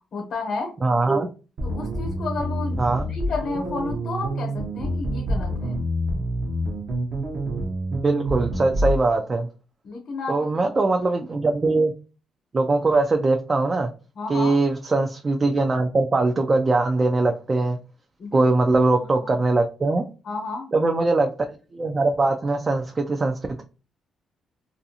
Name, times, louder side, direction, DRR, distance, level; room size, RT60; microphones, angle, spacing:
voice 1, 0.1-0.7 1.6-5.8 9.8-10.4 14.2-14.5 18.2-18.5 19.2-19.3 20.2-20.7, left 3 dB, 60° left, 0 dB, 0.9 m, -31 dB
voice 2, 0.8-1.3 2.8-3.1 7.9-9.5 10.3-11.9 12.5-13.9 14.3-17.8 18.3-20.1 20.7-21.3 21.7-23.6, right 3 dB, 30° right, 4 dB, 0.3 m, -21 dB
sound 1, 1.6-9.0, right 1 dB, 60° right, 0.7 m, -27 dB
2.5 x 2.3 x 2.7 m, 0.34 s
cardioid pair, 90°, 0 cm